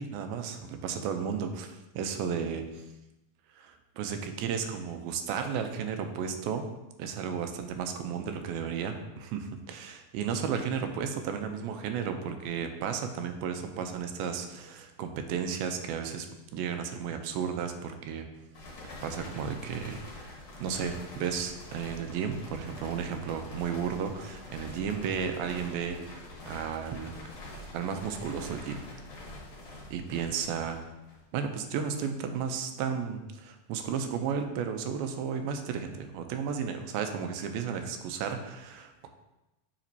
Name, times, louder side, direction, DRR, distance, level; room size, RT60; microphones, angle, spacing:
voice 1, 0.0-2.8 3.6-6.7 7.0-18.3 19.0-26.0 26.5-27.3 27.7-28.8 29.9-30.8 31.3-39.1, right 7 dB, 85° right, 6 dB, 2.4 m, -33 dB
sound 1, 18.5-31.4, left 1 dB, 55° left, 1.5 m, -45 dB
7.2 x 5.9 x 2.7 m, 0.98 s
omnidirectional pair, 4.2 m